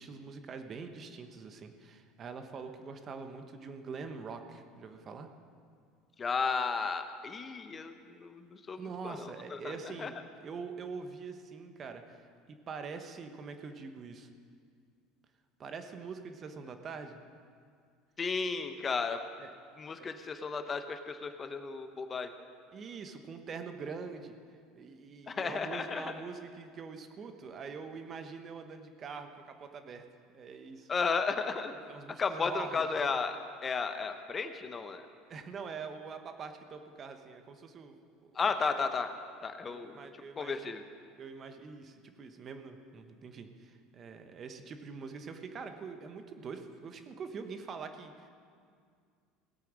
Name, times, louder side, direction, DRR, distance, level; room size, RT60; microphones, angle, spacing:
voice 1, 0.0-5.3 8.7-14.3 15.6-17.2 19.4-19.5 20.0-20.2 22.7-24.4 24.7-30.0 30.3-30.9 31.9-32.9 35.3-38.5 39.7-40.7 41.2-48.3, right 5 dB, 40° right, 7 dB, 1.2 m, -44 dB
voice 2, 6.2-10.1 18.2-19.2 19.8-22.3 25.3-26.1 30.9-31.7 32.2-33.4 33.6-35.1 38.3-39.1 39.4-40.0 40.4-40.8, left 5 dB, 30° left, 8 dB, 0.9 m, -34 dB
17.5 x 8.4 x 6.3 m, 2.2 s
hypercardioid pair, 85°, 0 cm